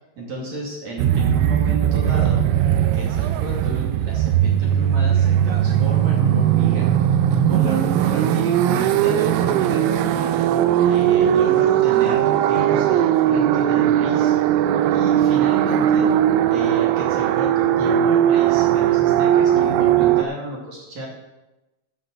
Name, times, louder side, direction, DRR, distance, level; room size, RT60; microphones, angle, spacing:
voice 1, 0.2-2.6 2.9-6.9 7.3-10.4 10.8-14.6 14.9-16.1 16.5-21.1, right 1 dB, 45° right, -3 dB, 2.7 m, -32 dB
sound 1, 1.0-20.2, right 10 dB, 90° right, 3.3 m, -18 dB
9.4 x 7.5 x 7.7 m, 1.0 s
omnidirectional pair, 5.9 m